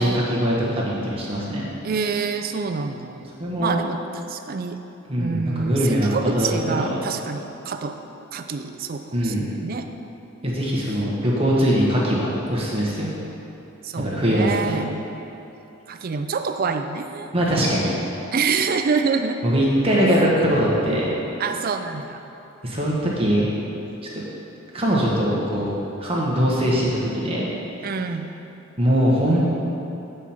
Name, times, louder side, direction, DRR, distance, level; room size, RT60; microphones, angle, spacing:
voice 1, 0.0-1.7 3.4-3.7 5.1-7.1 9.1-9.5 10.4-13.1 14.0-14.8 17.3-17.9 19.4-21.1 22.6-23.5 24.7-25.7 26.0-27.5 28.8-29.4, equal, 25° right, -5 dB, 1.2 m, -21 dB
voice 2, 1.8-3.3 3.6-4.8 5.2-8.0 8.3-9.9 10.3-10.4 13.8-14.9 15.9-17.3 18.3-19.4 20.4-20.5 21.4-22.2 27.8-28.3, right 5 dB, 40° right, 7 dB, 0.4 m, -27 dB
8.3 x 4.4 x 5.6 m, 3.0 s
head